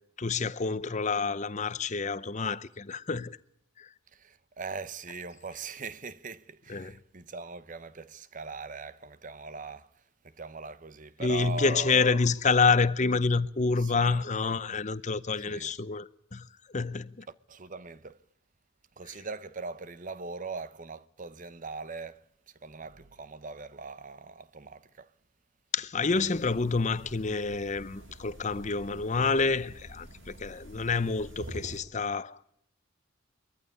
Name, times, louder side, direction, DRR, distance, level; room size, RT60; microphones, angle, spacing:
voice 1, 0.2-3.4 3.8-3.9 6.7-6.9 11.2-16.5 16.7-17.3 25.7-32.4, left 4 dB, 35° left, 0.8 m, -28 dB
voice 2, 4.1-12.2 13.8-14.2 15.4-15.7 17.5-18.2 19.0-25.1, right 4 dB, 40° right, 0.9 m, -41 dB
sound 1, 26.1-31.8, right 1 dB, 75° right, 7.1 m, -47 dB
22.0 x 14.5 x 9.7 m
head